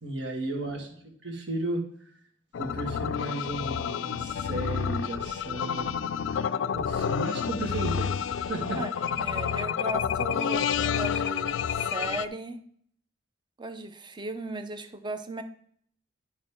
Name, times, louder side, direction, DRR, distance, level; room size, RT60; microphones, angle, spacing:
voice 1, 0.0-0.9 1.2-1.8 2.6-5.9 6.7-8.8, right 2 dB, 65° right, 2 dB, 1.9 m, -34 dB
sound 1, 2.5-12.3, left 7 dB, 75° left, 0.3 m, -29 dB
voice 2, 9.2-11.5 11.8-12.6 13.6-15.4, right 2 dB, 25° right, 10 dB, 0.6 m, -36 dB
10.5 x 6.5 x 3.6 m, 0.62 s
head